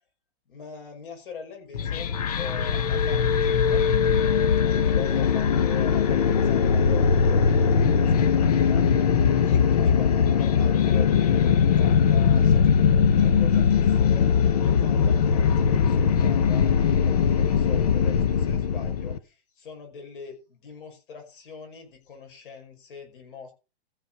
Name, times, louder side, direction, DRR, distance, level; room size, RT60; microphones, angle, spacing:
voice 1, 0.5-3.9 4.6-14.3 14.6-23.5, left 6 dB, 55° left, 3 dB, 5.4 m, -42 dB
sound 1, 1.7-19.2, left 7 dB, 35° left, 0.6 m, -21 dB
14.5 x 4.9 x 6.3 m, 0.31 s
hypercardioid pair, 175°, 32 cm